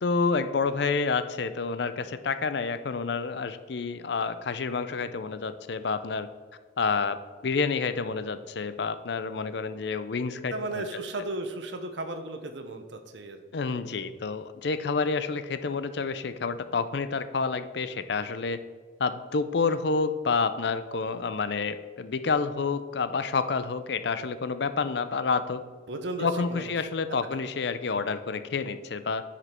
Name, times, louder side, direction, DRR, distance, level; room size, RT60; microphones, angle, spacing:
voice 1, 0.0-6.3 6.8-7.2 7.4-10.8 13.5-18.6 19.0-25.6 26.2-29.2, left 4 dB, 60° left, 12 dB, 0.5 m, -29 dB
voice 2, 10.5-13.4 25.9-26.9, right 2 dB, 70° right, 7 dB, 0.8 m, -35 dB
9.9 x 5.1 x 4.4 m, 1.5 s
head